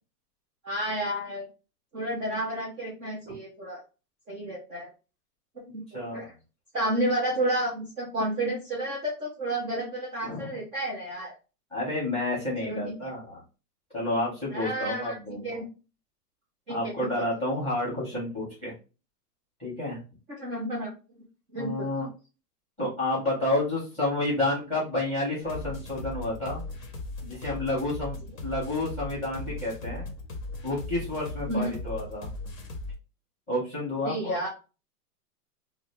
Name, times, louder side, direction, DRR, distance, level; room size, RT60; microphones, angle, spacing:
voice 1, 0.6-1.5 1.9-3.8 4.3-4.9 5.5-6.3 6.7-11.3 12.6-13.1 14.5-15.6 16.7-17.1 20.3-20.9 21.5-21.9 31.5-31.7 34.0-34.5, right 1 dB, 5° right, -5 dB, 0.4 m, -31 dB
voice 2, 5.9-6.3 10.2-10.6 11.7-13.4 13.9-15.6 16.7-18.7 19.6-20.0 21.5-22.1 22.8-26.6 27.2-28.2 28.4-30.1 30.6-32.3 33.5-34.4, left 1 dB, 10° left, -6 dB, 1.7 m, -30 dB
sound 1, 25.4-32.9, left 2 dB, 55° left, 1.2 m, -38 dB
3.9 x 2.0 x 3.3 m, 0.32 s
hypercardioid pair, 150°, 47 cm